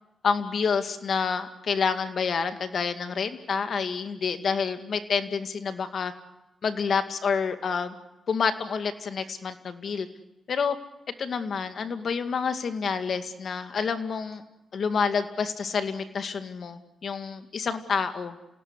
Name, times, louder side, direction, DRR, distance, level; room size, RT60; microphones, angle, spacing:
voice 1, 0.2-6.1 6.6-8.0 8.3-10.1 10.5-10.8 11.2-14.4 14.7-18.4, left 5 dB, 65° left, 8 dB, 2.1 m, -28 dB
28.0 x 17.5 x 9.9 m, 0.99 s
cardioid pair, 60°, 0 cm